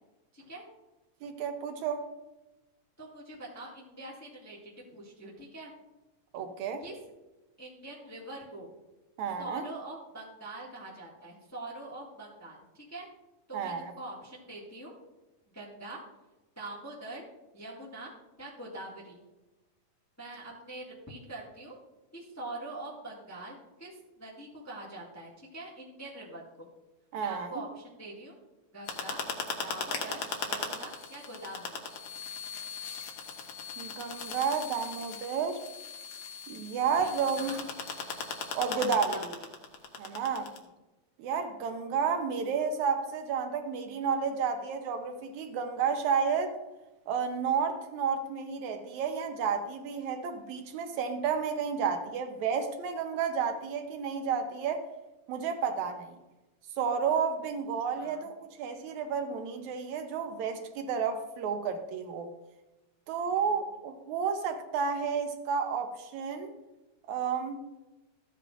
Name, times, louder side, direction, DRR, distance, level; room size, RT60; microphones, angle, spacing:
voice 1, 0.3-0.7 3.0-5.7 6.8-7.0 7.6-8.7 9.4-13.1 13.5-14.9 15.5-16.0 16.5-17.2 17.5-18.1 18.4-19.2 20.2-21.8 22.1-26.4 27.2-28.4 28.7-29.2 29.6-31.8 37.0-37.6 38.7-39.5 40.3-40.6 57.9-58.3, right 2 dB, 10° left, -4 dB, 0.9 m, -44 dB
voice 2, 1.2-2.1 6.3-6.8 9.2-9.7 13.5-13.9 27.1-27.5 33.8-35.6 36.5-37.5 38.5-39.2 40.0-40.5 41.2-46.6 47.1-54.8 55.3-56.2 56.8-62.3 63.1-66.5 67.1-67.6, right 6 dB, 75° right, 6 dB, 2.1 m, -31 dB
sound 1, 28.9-40.6, left 5 dB, 65° left, 2.0 m, -38 dB
14.5 x 8.2 x 2.5 m, 1.0 s
omnidirectional pair, 3.4 m